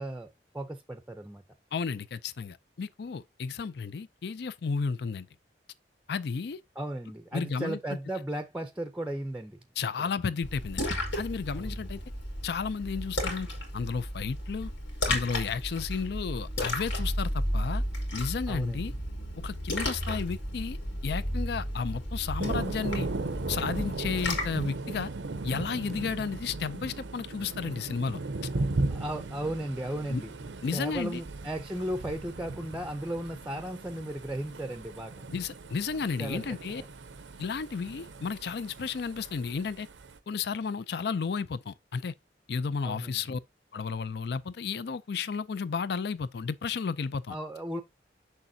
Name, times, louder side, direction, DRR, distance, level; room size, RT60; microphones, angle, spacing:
voice 1, 0.0-1.4 6.8-9.6 10.0-10.1 11.5-11.7 18.5-18.9 28.9-30.3 30.7-35.2 36.2-36.4 42.8-43.2 47.3-47.8, right 1 dB, 5° right, 0.5 m, -35 dB
voice 2, 1.7-5.3 6.1-6.6 7.3-8.0 9.8-10.8 11.2-12.0 12.4-13.5 13.7-14.7 15.1-17.8 18.1-18.9 19.4-20.8 21.0-23.1 23.5-25.1 25.4-28.2 30.1-30.2 30.6-31.2 35.3-36.8 37.4-39.9 40.3-42.1 42.5-43.4 43.7-47.4, left 5 dB, 60° left, 0.4 m, -33 dB
Splash splatter, 10.4-24.7, left 1 dB, 90° left, 2.7 m, -33 dB
Thunder, 22.4-40.2, right 2 dB, 90° right, 0.7 m, -37 dB
6.7 x 6.5 x 2.7 m
head